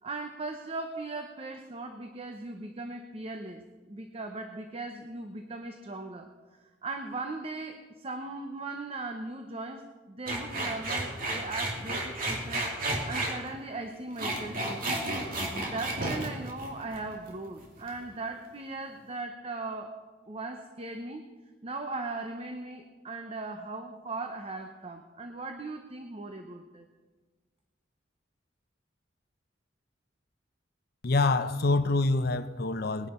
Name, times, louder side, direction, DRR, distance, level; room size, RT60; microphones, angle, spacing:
voice 1, 0.0-3.6 3.9-6.3 6.8-15.1 15.7-20.0 20.3-21.3 21.6-26.9, right 3 dB, 30° right, 0.8 m, -38 dB
sound 1, 10.3-13.3 14.0-17.3 17.6-18.0, right 2 dB, 50° right, 2.8 m, -32 dB
voice 2, 31.0-33.1, left 3 dB, 55° left, 0.7 m, -26 dB
20.0 x 11.0 x 4.4 m
head